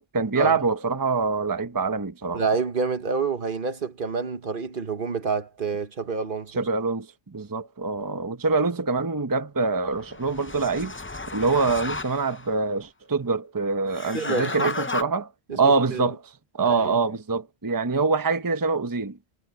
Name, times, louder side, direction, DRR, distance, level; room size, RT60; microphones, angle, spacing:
voice 1, 0.0-2.4 6.6-10.9 11.3-19.2, right 4 dB, 20° right, 0.8 m, -25 dB
voice 2, 2.3-6.5 14.1-14.7 15.5-16.1 16.6-16.9, right 4 dB, 55° right, 1.4 m, -28 dB
sound 1, 9.9-12.5 13.9-15.0, left 3 dB, 20° left, 0.3 m, -33 dB
omnidirectional pair, 1.0 m